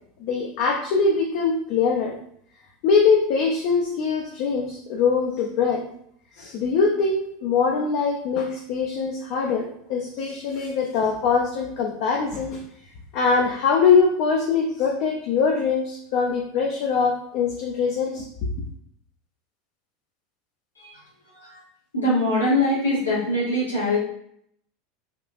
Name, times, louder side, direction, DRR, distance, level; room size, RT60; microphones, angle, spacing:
voice 1, 0.2-2.1 2.8-5.8 6.4-12.6 13.1-18.2, left 5 dB, 55° left, 0 dB, 0.4 m, -22 dB
voice 2, 21.3-21.6 21.9-24.0, left 1 dB, 90° left, -9 dB, 1.3 m, -23 dB
3.5 x 2.4 x 2.4 m, 0.67 s
figure-of-eight pair, 80°, 0 cm